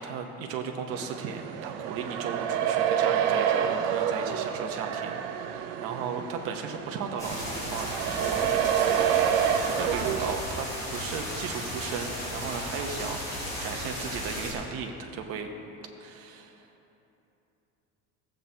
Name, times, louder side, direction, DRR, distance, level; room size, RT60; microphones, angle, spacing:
voice 1, 0.0-15.5 16.0-16.7, right 6 dB, 50° right, 4 dB, 0.8 m, -36 dB
sound 1, 0.9-10.3, right 9 dB, 90° right, 0.6 m, -28 dB
sound 2, 7.2-14.5, equal, 10° left, 2.1 m, -35 dB
14.5 x 7.6 x 2.8 m, 3.0 s
cardioid pair, 170°, 30 cm